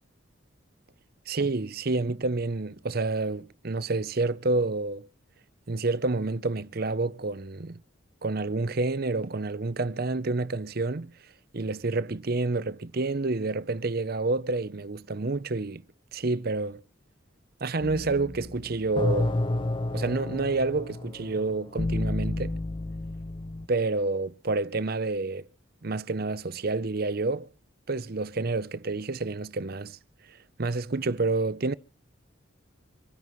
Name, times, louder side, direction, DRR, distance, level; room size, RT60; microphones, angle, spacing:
voice 1, 1.3-5.1 5.7-7.7 8.2-11.1 11.5-15.8 16.1-16.8 17.6-19.4 19.9-22.6 23.7-25.5 25.8-27.5 27.9-30.0 30.6-31.7, right 3 dB, 50° right, 0.7 m, -29 dB
sound 1, 17.8-23.7, left 2 dB, 25° left, 0.5 m, -31 dB
26.5 x 11.0 x 3.1 m
head